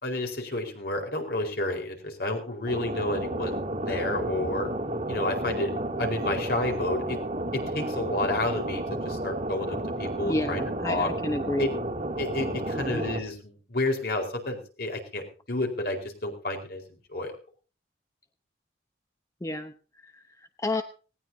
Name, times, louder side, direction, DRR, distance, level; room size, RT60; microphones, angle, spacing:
voice 1, 0.0-4.7 5.1-5.7 6.0-7.2 7.5-11.1 11.6-11.7 12.2-16.8 17.1-17.3, left 2 dB, 55° left, 3 dB, 4.5 m, -30 dB
sound 1, 2.7-13.2, right 1 dB, 40° right, 2.3 m, -32 dB
voice 2, 10.3-11.7 12.7-13.1 19.4-19.7 20.0-20.1 20.6-20.8, left 1 dB, 15° left, 7 dB, 0.9 m, -30 dB
19.0 x 19.0 x 2.8 m, 0.36 s
head